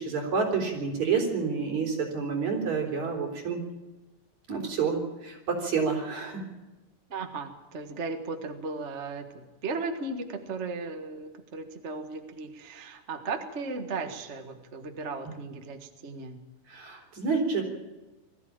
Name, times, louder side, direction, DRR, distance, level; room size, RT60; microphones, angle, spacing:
voice 1, 0.0-3.6 4.5-6.4 16.7-17.6, right 5 dB, 65° right, 1 dB, 5.4 m, -29 dB
voice 2, 7.1-16.4, right 3 dB, 30° right, 6 dB, 1.3 m, -36 dB
21.0 x 14.5 x 8.8 m, 1.1 s
omnidirectional pair, 3.4 m